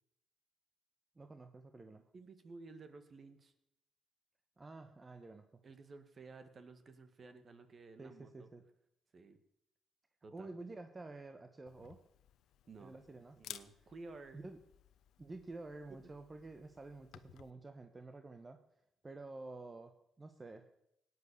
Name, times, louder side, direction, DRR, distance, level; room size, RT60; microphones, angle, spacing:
voice 1, 1.2-2.0 4.6-5.5 8.0-8.6 10.3-12.0 12.8-13.4 14.3-14.6 15.2-18.6 19.0-20.7, right 2 dB, 25° right, 7 dB, 1.2 m, -50 dB
voice 2, 2.1-3.5 5.6-8.5 9.1-9.4 10.2-10.6 12.7-12.9 13.4-14.5, right 3 dB, 40° right, 9 dB, 1.8 m, -54 dB
Camera, 11.7-17.5, left 11 dB, 80° left, 0.9 m, -56 dB
17.5 x 9.7 x 6.9 m, 0.81 s
cardioid pair, 90°, 0 cm